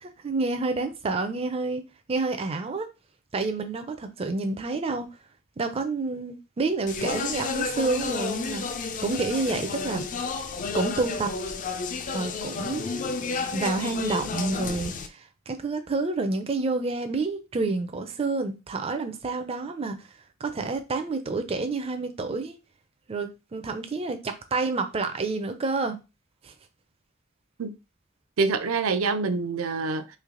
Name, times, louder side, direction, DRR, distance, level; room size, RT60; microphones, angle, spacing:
voice 1, 0.0-1.8 2.1-2.9 3.3-5.1 5.6-8.6 9.0-10.0 10.7-11.3 12.1-13.3 13.5-20.0 20.4-22.5 23.1-26.0 26.4-26.5, right 3 dB, 30° right, 0.4 m, -29 dB
Speech, 6.9-15.1, left 4 dB, 40° left, 0.4 m, -31 dB
voice 2, 28.4-30.2, right 4 dB, 80° right, 0.5 m, -26 dB
3.2 x 2.8 x 3.7 m
head